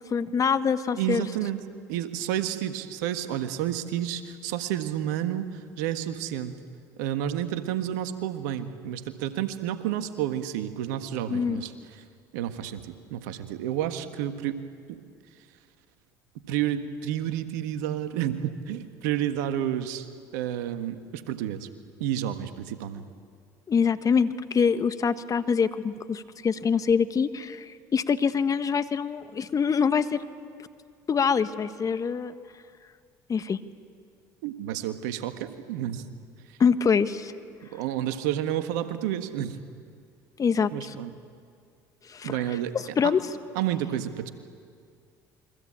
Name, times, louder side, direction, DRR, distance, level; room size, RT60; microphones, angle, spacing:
voice 1, 0.0-1.2 11.3-11.6 23.7-30.2 31.1-32.3 33.3-33.6 36.6-37.3 40.4-41.0 42.1-42.4 43.0-43.2, left 6 dB, 35° left, 11 dB, 1.4 m, -25 dB
voice 2, 1.0-1.6 1.9-6.5 7.0-11.7 12.3-14.6 14.9-15.0 16.5-20.1 20.3-21.7 22.0-23.0 34.4-36.0 37.7-39.6 40.7-41.1 42.2-42.7 43.0-43.1 43.5-44.3, right 11 dB, 80° right, 9 dB, 1.5 m, -30 dB
28.0 x 23.0 x 8.8 m, 2.2 s
hypercardioid pair, 65°, 9 cm